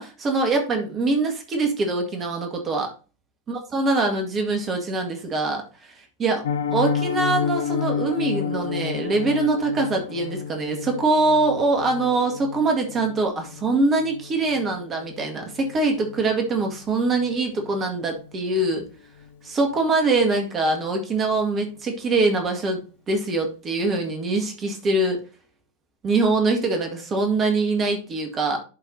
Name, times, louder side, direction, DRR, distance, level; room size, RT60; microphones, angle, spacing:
voice 1, 0.0-2.9 3.5-6.4 6.7-18.9 19.4-25.2 26.0-28.6, right 3 dB, 25° right, 3 dB, 1.9 m, -23 dB
Piano, 6.4-17.3 17.6-17.8 18.1-18.3 18.7-18.9 19.2-19.3, left 7 dB, 60° left, 0.6 m, -31 dB
11.5 x 5.0 x 2.7 m, 0.34 s
figure-of-eight pair, 90°, 0 cm